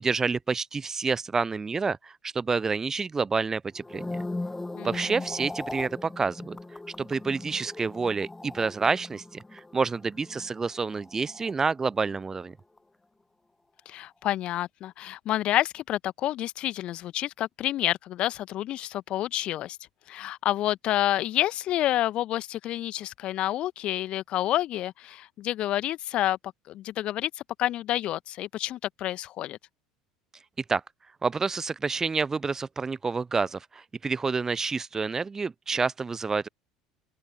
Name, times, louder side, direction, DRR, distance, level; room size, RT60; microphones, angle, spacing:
voice 1, 0.0-4.2 4.8-6.6 7.0-12.5 30.6-30.8 31.2-36.5, right 4 dB, 20° right, 0.7 m, -28 dB
sound 1, 3.7-12.1 12.4-12.8, left 2 dB, 10° left, 1.1 m, -39 dB
voice 2, 13.8-19.8 20.1-26.4 26.7-29.6, left 13 dB, 45° left, 1.4 m, -29 dB
open air
figure-of-eight pair, 65°, 2 cm